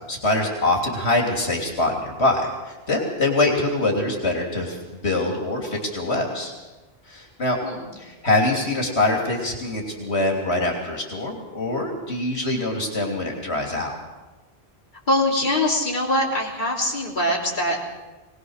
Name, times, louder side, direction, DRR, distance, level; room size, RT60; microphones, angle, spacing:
voice 1, 0.1-6.5 7.1-7.6 8.0-13.9, left 2 dB, 85° left, 1 dB, 3.4 m, -24 dB
voice 2, 15.1-17.8, left 1 dB, 50° left, -2 dB, 3.5 m, -23 dB
21.5 x 19.5 x 6.5 m, 1.2 s
omnidirectional pair, 1.1 m